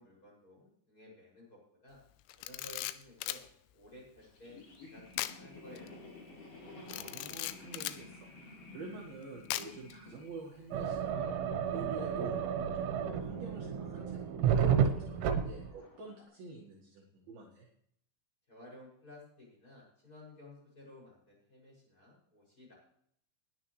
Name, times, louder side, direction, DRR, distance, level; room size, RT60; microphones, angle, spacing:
voice 1, 0.0-2.0 2.3-3.4 3.7-6.0 10.0-10.2 18.5-22.7, left 1 dB, 20° left, -4 dB, 6.5 m, -55 dB
Camera, 2.3-3.5 5.1-5.4 5.8-5.9 6.9-8.0 9.5-9.9, left 15 dB, 85° left, 3.1 m, -38 dB
sound 1, 4.2-16.3, left 2 dB, 50° left, 6.3 m, -54 dB
voice 2, 6.8-11.3 11.7-12.4 13.0-17.7, right 3 dB, 60° right, -2 dB, 2.9 m, -47 dB
sound 2, 10.7-15.7, right 8 dB, 80° right, 3.5 m, -31 dB
20.0 x 9.9 x 3.2 m, 0.68 s
omnidirectional pair, 5.5 m